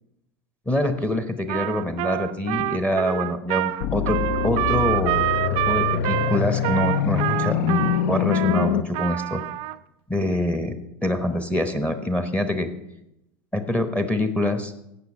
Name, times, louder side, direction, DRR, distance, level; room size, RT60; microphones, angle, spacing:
voice 1, 0.7-5.3 5.7-9.4 10.1-10.8 11.0-12.7 13.5-14.7, left 1 dB, 10° left, 8 dB, 0.9 m, -25 dB
Trumpet, 1.5-9.8, right 17 dB, 45° right, 0.4 m, -26 dB
sound 1, 3.8-8.8, left 10 dB, 55° left, 0.5 m, -24 dB
16.5 x 6.1 x 4.3 m, 0.85 s
figure-of-eight pair, 80°, 13 cm